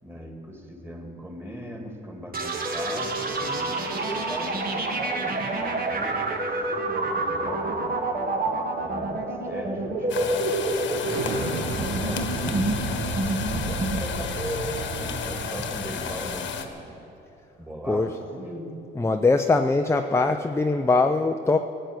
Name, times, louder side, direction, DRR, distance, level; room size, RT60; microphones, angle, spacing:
voice 1, 0.0-6.3 6.5-8.1 8.8-17.0 17.6-18.9, equal, 10° right, 2 dB, 2.7 m, -38 dB
sound 1, 2.3-15.9, right 2 dB, 50° right, 1.8 m, -28 dB
sound 2, 10.1-16.7, left 7 dB, 70° left, 1.4 m, -33 dB
Explosion, 11.0-16.5, right 4 dB, 85° right, 1.2 m, -33 dB
voice 2, 19.0-21.6, left 3 dB, 15° left, 5 dB, 0.6 m, -21 dB
17.5 x 9.0 x 8.1 m, 2.9 s
cardioid pair, 90°, 20 cm